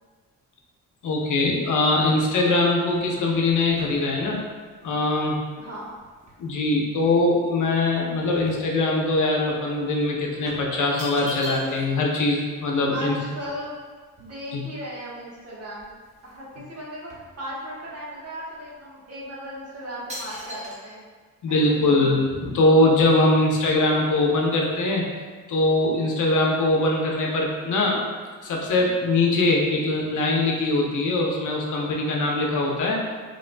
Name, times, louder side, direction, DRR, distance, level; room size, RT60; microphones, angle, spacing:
voice 1, 1.0-4.4 4.8-5.4 6.4-13.2 14.5-14.7 21.4-25.1 25.5-28.0 28.4-33.0, left 2 dB, 65° left, -1 dB, 0.8 m, -22 dB
sound 1, 2.9-6.6 7.1-9.2 9.5-9.7 10.5-12.0 12.3-12.4 12.6-14.8 15.3-15.4 15.7-16.5 16.7-18.0 18.5-18.7 19.3-19.6 20.1-20.8, equal, 20° right, 0.8 m, -42 dB
voice 2, 5.6-5.9 12.9-13.7 14.2-16.0 16.2-17.1 17.4-21.0 21.5-22.1, equal, 50° right, -6 dB, 1.2 m, -36 dB
5.1 x 3.1 x 2.2 m, 1.5 s
cardioid pair, 110°, 33 cm